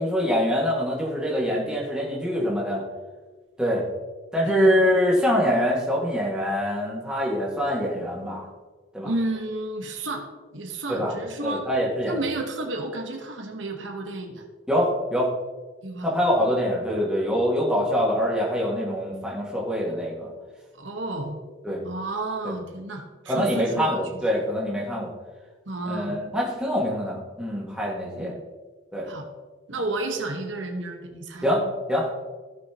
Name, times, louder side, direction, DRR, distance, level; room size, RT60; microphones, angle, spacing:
voice 1, 0.0-2.8 3.6-3.8 4.3-8.5 8.9-9.1 10.9-11.1 11.4-12.2 14.7-15.3 16.0-20.3 21.6-21.8 23.3-25.1 25.9-28.3 28.9-29.1 31.4-31.6 31.9-32.1, equal, 5° right, -5 dB, 1.9 m, -24 dB
voice 2, 4.4-4.8 9.0-10.2 10.5-11.7 12.1-14.4 15.8-16.1 20.8-21.4 21.8-24.0 25.7-26.2 28.1-28.4 29.0-29.3 29.7-31.6, right 2 dB, 85° right, 3 dB, 1.3 m, -31 dB
15.5 x 6.1 x 3.0 m, 1.4 s
head